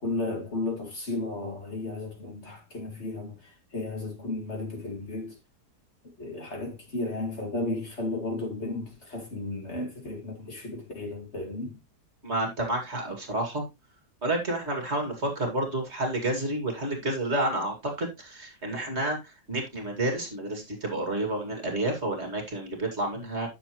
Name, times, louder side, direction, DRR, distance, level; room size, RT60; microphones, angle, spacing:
voice 1, 0.0-3.4 3.7-5.4 6.2-11.8, left 2 dB, 40° left, 2.3 m, -34 dB
voice 2, 12.2-13.6 14.2-23.5, right 1 dB, 40° right, 2.5 m, -30 dB
9.8 x 6.9 x 3.0 m
omnidirectional pair, 1.8 m